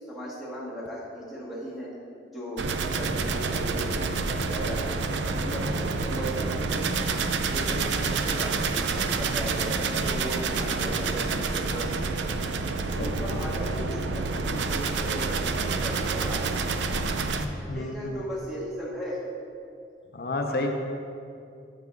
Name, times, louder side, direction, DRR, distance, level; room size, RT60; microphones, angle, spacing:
voice 1, 0.1-1.9 2.3-2.6 2.9-4.9 5.3-5.7 6.0-7.1 7.5-12.3 12.9-16.4 17.7-19.2 20.5-20.7, equal, ahead, -8 dB, 1.9 m, -36 dB
sound 1, 2.6-17.5, right 4 dB, 85° right, 0.5 m, -28 dB
voice 2, 13.0-13.3 17.4-18.2 20.1-20.7, left 2 dB, 55° left, 3 dB, 0.6 m, -31 dB
9.1 x 5.8 x 3.9 m, 2.5 s
head